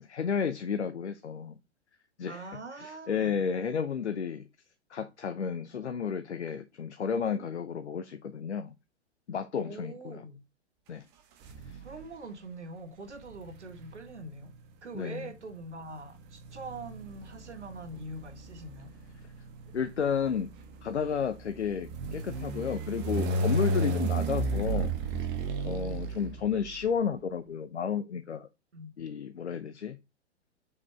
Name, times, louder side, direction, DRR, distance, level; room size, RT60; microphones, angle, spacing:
voice 1, 0.0-1.5 2.2-4.5 4.9-8.7 9.3-10.2 10.9-11.0 11.7-11.8 14.9-15.3 19.7-20.5 20.8-24.9 25.6-28.5 29.0-30.0, left 7 dB, 75° left, 0.8 m, -32 dB
voice 2, 2.3-3.4 9.6-10.4 11.8-14.5 14.8-18.9 28.7-28.9, right 2 dB, 80° right, 1.6 m, -43 dB
sound 1, 11.4-12.1 13.2-26.9, right 2 dB, 30° right, 1.3 m, -34 dB
6.5 x 4.9 x 3.4 m
figure-of-eight pair, 105°, 34 cm